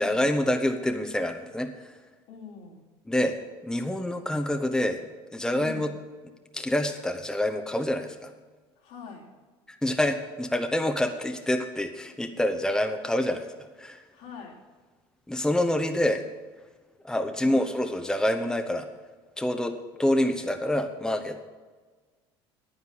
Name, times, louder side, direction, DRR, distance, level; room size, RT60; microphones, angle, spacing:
voice 1, 0.0-1.9 3.1-3.4 3.6-5.0 5.3-5.9 6.5-8.3 9.7-13.5 13.8-14.0 15.3-16.2 17.0-18.9 19.4-21.4, left 1 dB, 5° left, 5 dB, 1.0 m, -27 dB
voice 2, 2.3-2.8 5.6-5.9 8.8-9.3 14.1-14.6, left 5 dB, 70° left, -2 dB, 2.9 m, -43 dB
9.7 x 9.3 x 7.3 m, 1.4 s
hypercardioid pair, 70°, 13 cm